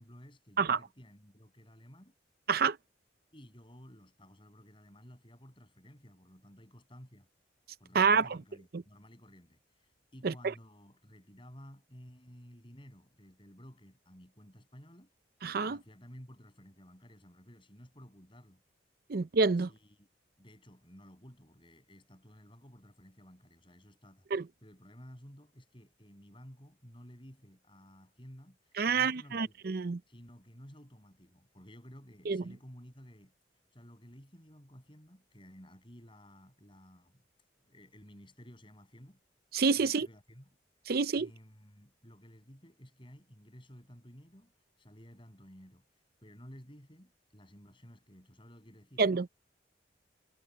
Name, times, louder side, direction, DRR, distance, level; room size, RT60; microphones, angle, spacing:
voice 1, 0.0-2.1 3.3-7.3 7.8-15.1 15.6-18.6 19.6-20.1 20.4-29.6 30.1-37.2 37.6-39.2 39.8-40.5 41.2-49.0, equal, 30° left, 7.5 m, -54 dB
voice 2, 7.9-8.3 8.7-8.8 10.2-10.3 15.4-15.8 19.1-19.7 24.3-24.4 28.8-30.0 32.3-32.4 39.5-40.1 40.9-41.3 49.0-49.3, right 5 dB, 55° right, 0.6 m, -27 dB
head